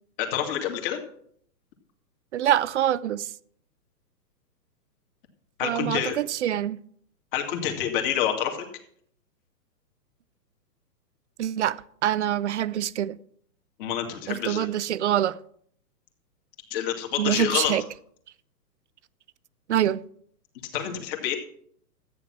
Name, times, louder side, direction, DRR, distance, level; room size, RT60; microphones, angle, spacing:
voice 1, 0.2-1.0 5.6-6.1 7.3-8.6 13.8-14.7 16.7-17.7 20.7-21.4, left 10 dB, 35° left, 2.4 m, -27 dB
voice 2, 2.3-3.2 5.6-6.8 11.4-13.2 14.3-15.4 17.2-17.8 19.7-20.0, right 11 dB, 45° right, 0.5 m, -25 dB
13.5 x 9.3 x 6.0 m
hypercardioid pair, 150°, 50 cm